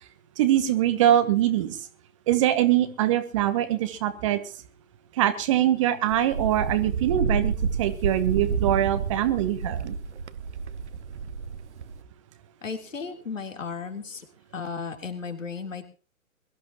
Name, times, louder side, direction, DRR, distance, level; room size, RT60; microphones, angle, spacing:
voice 1, 0.4-1.8 2.3-4.4 5.2-7.5 7.8-10.0, right 12 dB, 25° right, 11 dB, 1.1 m, -23 dB
Wind, 6.1-12.0, right 5 dB, 55° right, 1.2 m, -30 dB
voice 2, 12.6-14.3 14.5-15.8, left 5 dB, 65° left, 4 dB, 3.5 m, -34 dB
22.5 x 13.5 x 3.0 m, 0.36 s
figure-of-eight pair, 130°, 42 cm